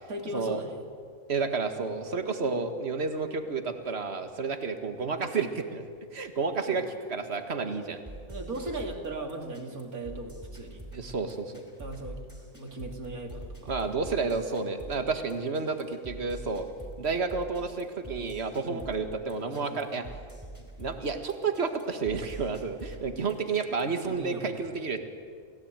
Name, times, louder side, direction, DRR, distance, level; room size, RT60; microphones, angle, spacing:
voice 1, 0.1-0.8 2.0-2.2 6.7-6.8 8.3-10.8 11.8-12.2 12.5-13.8 18.6-18.9 19.5-19.9 24.0-24.7, right 2 dB, 90° right, 3 dB, 3.1 m, -38 dB
voice 2, 1.3-5.8 6.1-8.0 10.9-11.5 13.7-16.7 17.0-20.0 20.8-25.0, right 4 dB, 45° right, 7 dB, 1.9 m, -31 dB
sound 1, 8.1-24.1, right 2 dB, 15° right, 4.8 m, -45 dB
29.5 x 16.5 x 9.0 m, 2.1 s
omnidirectional pair, 1.5 m